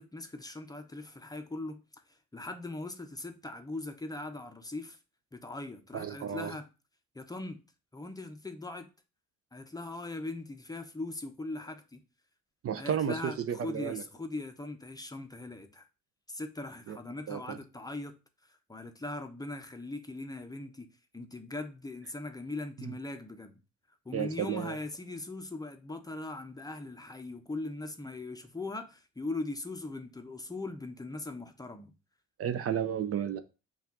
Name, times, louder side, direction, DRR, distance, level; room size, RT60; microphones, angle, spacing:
voice 1, 0.0-1.8 2.1-5.0 5.3-6.7 7.1-7.6 7.9-8.9 9.5-12.0 12.8-15.9 16.3-18.1 18.4-20.9 21.1-23.6 24.0-31.9, left 2 dB, 10° left, 0.6 m, -40 dB
voice 2, 5.9-6.5 12.6-14.0 16.9-17.0 17.3-17.6 22.9-23.0 24.1-24.8 32.4-33.4, right 9 dB, 50° right, 0.5 m, -32 dB
5.6 x 2.4 x 3.6 m
cardioid pair, 90°, 30 cm